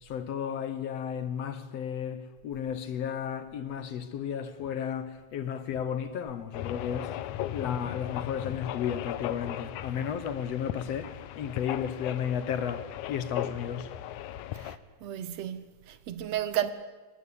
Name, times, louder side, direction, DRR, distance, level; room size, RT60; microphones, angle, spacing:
voice 1, 0.0-7.1 7.5-13.9, left 8 dB, 65° left, 2.1 m, -33 dB
sound 1, 6.5-14.8, left 12 dB, 80° left, 2.3 m, -37 dB
voice 2, 15.0-16.7, right 11 dB, 65° right, 2.1 m, -33 dB
23.5 x 19.5 x 8.7 m
omnidirectional pair, 3.5 m